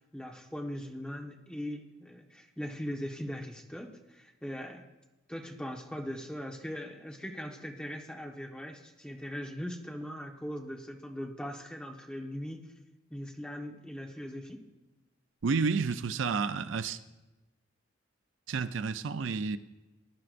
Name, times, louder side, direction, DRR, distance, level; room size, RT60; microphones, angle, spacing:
voice 1, 0.1-4.8 5.3-12.7 13.1-14.6, equal, 5° left, 1.2 m, -40 dB
voice 2, 15.4-17.0 18.5-19.6, right 5 dB, 75° right, 0.5 m, -30 dB
22.0 x 11.0 x 2.6 m
head